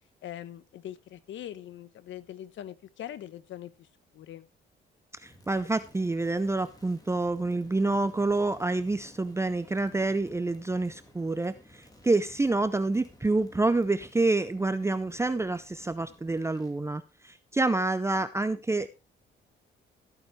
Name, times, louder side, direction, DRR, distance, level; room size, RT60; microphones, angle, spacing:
voice 1, 0.2-3.9 4.1-4.5, left 11 dB, 75° left, 16 dB, 1.0 m, -42 dB
voice 2, 5.1-18.9, right 2 dB, 15° right, 12 dB, 0.6 m, -28 dB
Crackle, 5.2-16.8, left 1 dB, 20° left, 2.9 m, -55 dB
14.5 x 9.0 x 3.2 m, 0.27 s
cardioid pair, 90°, 20 cm